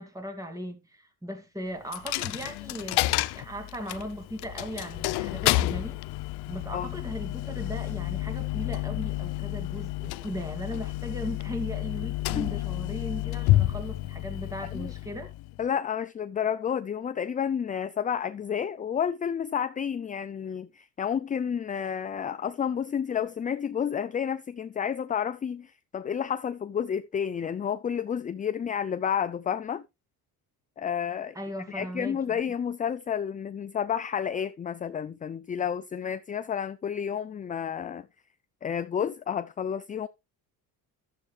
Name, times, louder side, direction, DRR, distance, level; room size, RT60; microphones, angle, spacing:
voice 1, 0.0-6.0 6.5-15.3 31.3-32.4, equal, 10° right, 2.2 m, -38 dB
Coin (dropping), 1.9-15.6, left 17 dB, 85° left, 0.7 m, -30 dB
voice 2, 15.6-29.8 30.8-31.4 31.7-38.1 38.6-40.1, left 8 dB, 20° left, 0.4 m, -30 dB
12.0 x 7.6 x 3.2 m
cardioid pair, 115°, 38 cm